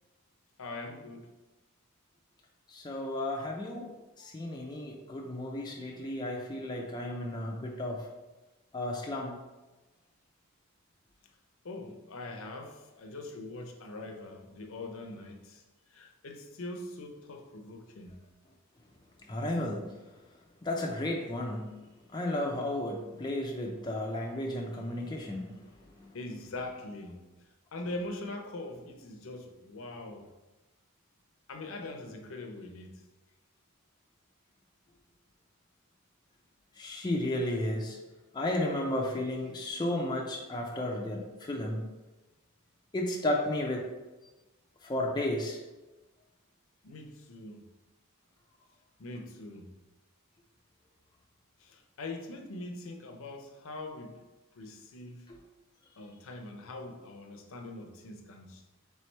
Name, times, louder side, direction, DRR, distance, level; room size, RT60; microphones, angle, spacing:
voice 1, 0.6-1.3 4.2-4.3 11.6-15.6 15.9-18.2 26.1-27.2 27.7-30.3 31.5-33.0 46.8-47.7 49.0-49.7 51.6-54.1 54.6-55.3 56.0-58.6, left 2 dB, 65° left, 3 dB, 0.6 m, -42 dB
voice 2, 2.7-3.9 4.2-8.0 8.7-9.4 19.3-19.8 20.6-21.8 22.1-25.5 26.0-26.1 36.8-38.0 38.3-41.8 42.9-43.9 44.8-45.6, left 1 dB, 20° left, -1 dB, 0.4 m, -33 dB
3.3 x 3.2 x 4.3 m, 1.1 s
head